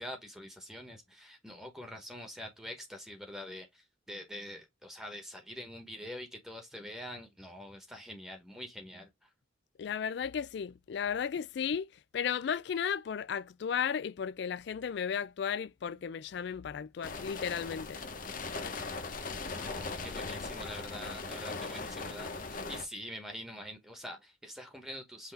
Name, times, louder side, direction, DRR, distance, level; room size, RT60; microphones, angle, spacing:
voice 1, 0.0-9.3 19.5-25.3, equal, ahead, 0.9 m, -45 dB
voice 2, 9.8-18.0, left 7 dB, 60° left, 0.3 m, -34 dB
sound 1, 17.0-22.8, left 3 dB, 45° left, 0.8 m, -39 dB
5.7 x 2.7 x 3.3 m
head